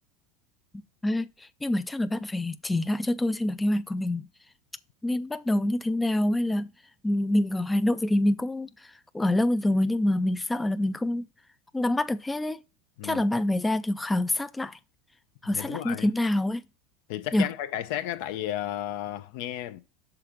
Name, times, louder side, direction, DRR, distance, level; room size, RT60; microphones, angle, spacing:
voice 1, 1.0-4.3 5.0-6.7 7.0-8.7 9.1-11.2 11.7-12.6 13.0-14.8 15.4-16.6 17.3-17.5, left 1 dB, 10° left, 0.3 m, -26 dB
voice 2, 15.5-16.1 17.1-19.8, left 12 dB, 65° left, 0.6 m, -33 dB
5.9 x 3.9 x 4.9 m
supercardioid pair, 135°, 0 cm